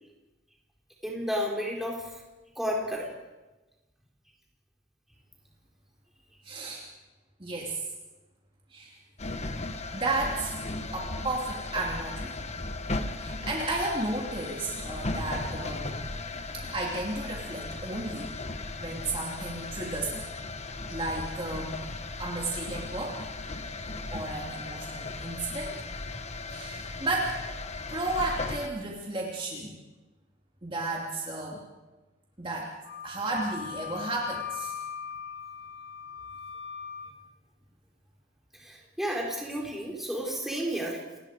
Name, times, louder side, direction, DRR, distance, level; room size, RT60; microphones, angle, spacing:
voice 1, 1.0-2.1 2.6-3.1 38.5-41.0, equal, ahead, -2 dB, 4.2 m, -32 dB
voice 2, 6.4-6.8 7.4-7.8 8.7-8.9 9.9-10.6 10.9-12.3 13.2-16.0 16.5-18.3 18.8-20.3 20.9-21.8 22.2-23.2 24.1-25.8 26.5-27.4 27.9-29.8 30.6-31.6 32.4-32.7 33.0-34.8, right 2 dB, 25° right, -2 dB, 2.8 m, -33 dB
sound 1, 9.2-28.7, left 2 dB, 35° left, 1.3 m, -37 dB
Wind instrument woodwind instrument, 32.8-37.1, left 8 dB, 80° left, 3.3 m, -39 dB
29.5 x 19.5 x 5.1 m, 1.1 s
head